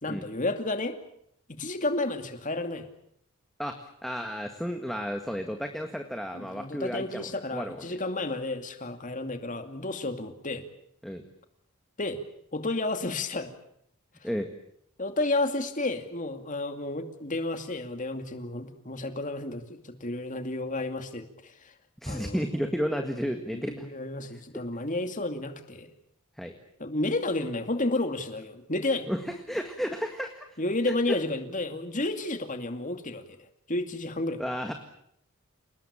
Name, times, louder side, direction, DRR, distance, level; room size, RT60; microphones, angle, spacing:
voice 1, 0.0-1.0 1.5-2.9 6.3-10.6 12.0-12.2 12.5-13.5 15.0-21.7 22.1-22.4 23.5-25.9 26.8-29.1 30.6-33.2 33.7-34.4, left 2 dB, 35° left, 7 dB, 2.5 m, -31 dB
voice 2, 4.0-7.8 11.0-11.2 14.2-14.5 22.0-23.9 26.4-26.5 29.1-29.2 29.5-30.5 31.1-31.2 34.4-34.7, equal, ahead, 5 dB, 1.8 m, -32 dB
29.0 x 19.5 x 8.8 m, 0.72 s
head